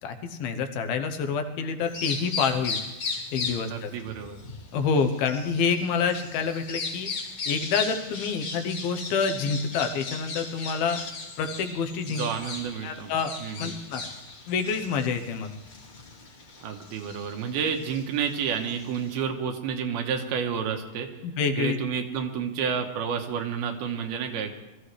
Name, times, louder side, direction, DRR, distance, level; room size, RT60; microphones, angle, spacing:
voice 1, 0.0-2.8 3.3-3.9 4.7-7.1 7.5-11.0 11.4-12.3 12.8-14.1 14.5-15.5 21.2-21.8, left 5 dB, 80° left, 6 dB, 2.9 m, -27 dB
Bird vocalization bird call bird song, 1.8-19.2, left 4 dB, 45° left, 3.3 m, -37 dB
voice 2, 3.7-4.4 12.1-13.1 13.4-13.8 16.6-21.1 21.6-24.5, right 7 dB, 90° right, 4 dB, 3.1 m, -30 dB
22.0 x 14.0 x 3.3 m, 1.0 s
omnidirectional pair, 4.3 m